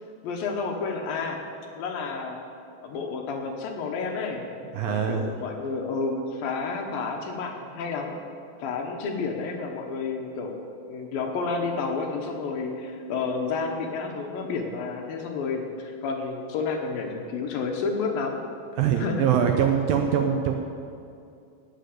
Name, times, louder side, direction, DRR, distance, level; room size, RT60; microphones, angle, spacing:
voice 1, 0.2-1.4 1.8-2.4 2.8-4.4 4.9-8.2 8.6-10.5 10.9-18.4 19.0-19.3, left 4 dB, 70° left, 2 dB, 2.6 m, -30 dB
voice 2, 4.7-5.3 18.8-20.5, right 8 dB, 75° right, 4 dB, 2.2 m, -23 dB
18.5 x 6.8 x 7.9 m, 2.5 s
omnidirectional pair, 4.8 m